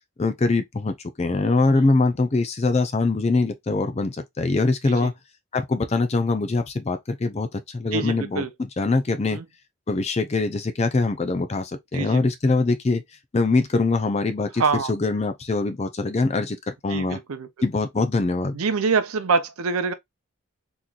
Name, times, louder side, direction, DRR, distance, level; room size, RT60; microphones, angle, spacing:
voice 1, 0.2-5.1 5.5-9.4 9.9-13.0 13.3-17.2 17.6-18.6, left 3 dB, 30° left, 0.4 m, -23 dB
voice 2, 7.9-8.5 9.3-9.4 11.9-12.2 14.6-14.9 16.9-17.5 18.5-19.9, right 5 dB, 85° right, 0.6 m, -25 dB
3.7 x 3.0 x 2.4 m
head